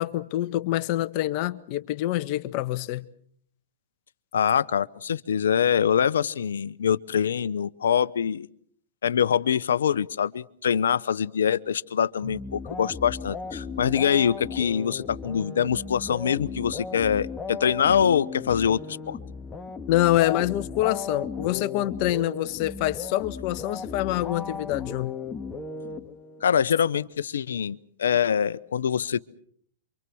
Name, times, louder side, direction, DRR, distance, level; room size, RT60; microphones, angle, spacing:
voice 1, 0.0-3.1 19.9-25.1, left 15 dB, 45° left, 1.4 m, -26 dB
voice 2, 4.3-8.5 9.0-19.2 26.4-29.2, left 8 dB, 75° left, 1.0 m, -24 dB
sound 1, 12.2-26.5, left 4 dB, 15° left, 1.8 m, -36 dB
28.0 x 25.0 x 6.3 m
hypercardioid pair, 120°, 0 cm